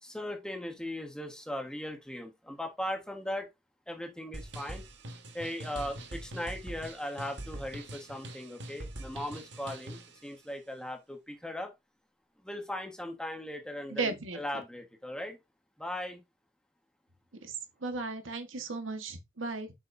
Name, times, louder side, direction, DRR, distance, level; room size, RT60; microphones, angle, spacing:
voice 1, 0.0-3.5 3.9-4.8 5.3-11.7 12.4-15.4 15.8-16.2, left 1 dB, 5° left, 1.5 m, -38 dB
sound 1, 4.3-10.2, right 1 dB, 65° right, 1.6 m, -43 dB
voice 2, 13.9-14.4 17.4-17.5 17.8-19.7, right 3 dB, 90° right, 1.5 m, -35 dB
7.0 x 6.1 x 2.7 m
head